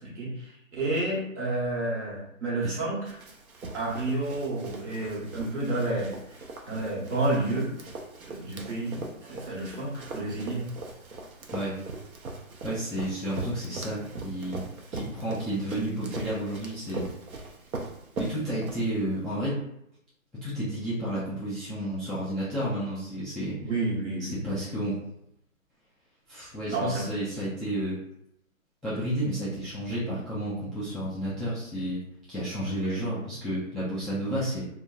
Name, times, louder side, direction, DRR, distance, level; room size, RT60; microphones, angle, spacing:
voice 1, 0.0-3.2 3.7-6.4 6.6-7.7 8.3-10.7 23.6-24.4 26.7-27.1 32.8-33.0, right 2 dB, 55° right, -5 dB, 1.1 m, -30 dB
Run, 3.1-19.2, right 3 dB, 80° right, 0.7 m, -40 dB
voice 2, 12.6-14.6 14.9-17.0 17.4-17.5 18.2-19.6 20.4-23.6 24.2-25.0 26.3-28.0 28.8-32.0 32.3-34.6, right 1 dB, ahead, -10 dB, 0.3 m, -31 dB
2.7 x 2.1 x 2.3 m, 0.77 s
hypercardioid pair, 170°, 42 cm